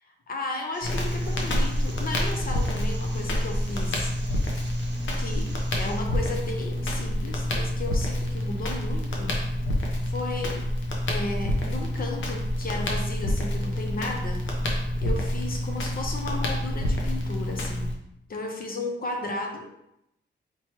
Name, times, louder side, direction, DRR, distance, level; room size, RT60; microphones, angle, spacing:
voice 1, 0.3-4.1 5.2-9.3 10.0-10.6 11.1-14.4 15.0-17.9 18.3-19.7, left 2 dB, 50° left, 2 dB, 0.6 m, -34 dB
sound 1, 0.7-6.0, right 3 dB, 70° right, 0.8 m, -47 dB
Crackle, 0.8-17.9, left 1 dB, 90° left, 0.8 m, -28 dB
4.4 x 3.1 x 3.0 m, 0.80 s
wide cardioid pair, 115°, 19 cm